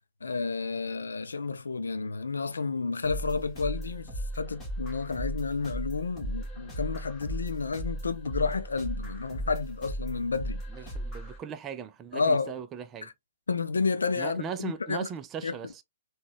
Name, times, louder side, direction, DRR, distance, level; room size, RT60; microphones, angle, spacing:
voice 1, 0.2-10.9 12.1-12.5 13.0-13.1 13.5-15.1 15.4-15.6, left 4 dB, 75° left, 0.5 m, -31 dB
sound 1, 3.0-11.4, right 1 dB, 15° left, 1.7 m, -37 dB
voice 2, 10.7-13.1 14.2-15.8, right 7 dB, 20° right, 0.4 m, -38 dB
3.9 x 2.3 x 2.9 m
figure-of-eight pair, 120°, 0 cm